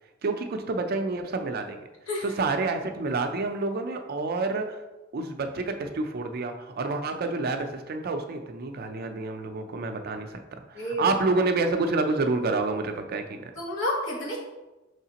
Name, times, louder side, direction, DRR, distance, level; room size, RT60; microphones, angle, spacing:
voice 1, 0.2-1.8 2.2-4.8 5.1-10.4 10.7-13.5, right 3 dB, 50° right, 6 dB, 0.4 m, -28 dB
voice 2, 13.6-14.4, left 1 dB, 75° left, -3 dB, 1.3 m, -30 dB
5.6 x 3.2 x 2.8 m, 1.1 s
head